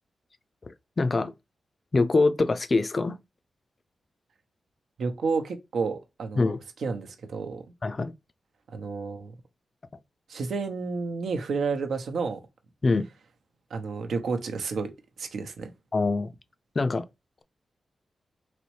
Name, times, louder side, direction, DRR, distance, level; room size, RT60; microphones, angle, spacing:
voice 1, 0.7-1.3 1.9-3.2 6.4-6.6 7.8-8.1 12.8-13.0 15.9-16.3 16.8-17.0, left 3 dB, 30° left, 0.3 m, -24 dB
voice 2, 5.0-7.6 8.7-9.3 10.3-12.4 13.7-14.9 15.2-15.7, right 4 dB, 85° right, 0.8 m, -31 dB
4.1 x 3.0 x 3.1 m
wide cardioid pair, 170°, 0 cm